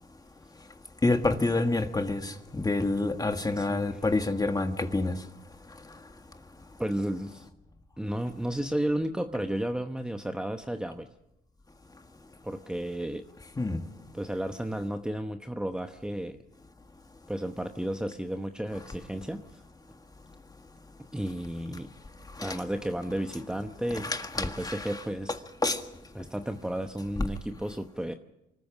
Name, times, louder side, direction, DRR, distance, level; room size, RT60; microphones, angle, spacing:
voice 1, 1.0-5.1 13.6-13.8 22.4-22.6 24.0-25.0 25.6-25.8, left 2 dB, 20° left, 1.7 m, -27 dB
voice 2, 3.5-4.0 6.8-7.5 8.0-11.1 12.4-13.2 14.1-16.4 17.3-19.6 21.1-21.9 22.4-25.4 26.1-28.1, right 1 dB, 5° right, 0.9 m, -33 dB
25.0 x 14.0 x 7.3 m
cardioid pair, 90°, 20 cm